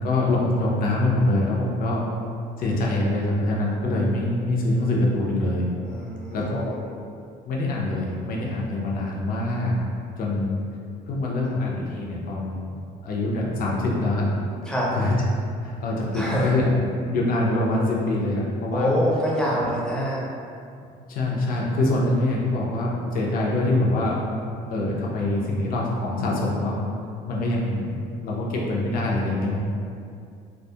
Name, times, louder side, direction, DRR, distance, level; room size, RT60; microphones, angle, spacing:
voice 1, 0.0-2.0 2.6-5.6 6.3-6.8 7.4-9.7 10.2-10.6 11.1-12.7 13.0-14.3 14.9-15.2 15.6-16.8 17.1-18.9 19.5-19.7 21.1-24.2 24.7-26.8 27.3-28.0 28.2-29.6, left 2 dB, 60° left, -3 dB, 0.5 m, -24 dB
voice 2, 5.8-6.8 11.4-11.5 14.7-14.9 16.1-16.5 18.7-20.2, equal, 5° left, -6 dB, 0.5 m, -26 dB
2.2 x 2.0 x 2.7 m, 2.4 s
cardioid pair, 110°, 17 cm